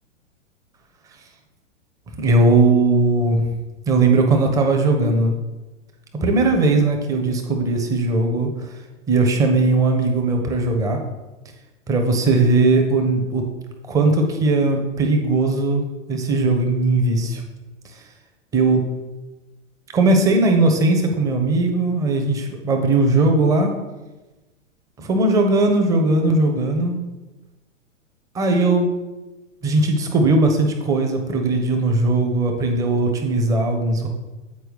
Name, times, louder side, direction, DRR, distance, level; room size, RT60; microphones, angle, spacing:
voice 1, 2.2-3.4 3.9-5.3 6.1-8.5 9.1-11.0 11.9-13.4 13.9-15.8 16.1-17.4 18.5-18.8 19.9-23.7 25.0-27.0 28.3-28.9 29.6-34.1, right 2 dB, 10° right, 3 dB, 0.5 m, -18 dB
8.0 x 4.4 x 3.3 m, 1.1 s
figure-of-eight pair, 105°, 38 cm